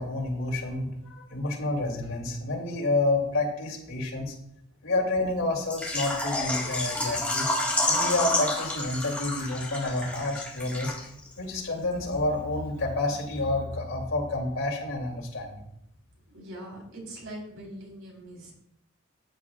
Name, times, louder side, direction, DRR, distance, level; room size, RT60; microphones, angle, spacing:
voice 1, 0.0-4.3 4.8-7.5 7.8-10.9 11.4-15.6, left 2 dB, 80° left, -1 dB, 2.9 m, -29 dB
Water / Liquid, 5.7-11.3 11.6-11.7 12.1-12.2, left 2 dB, 5° left, 1.8 m, -29 dB
voice 2, 16.3-18.5, right 1 dB, 90° right, -2 dB, 4.0 m, -42 dB
13.5 x 9.3 x 2.4 m, 0.74 s
head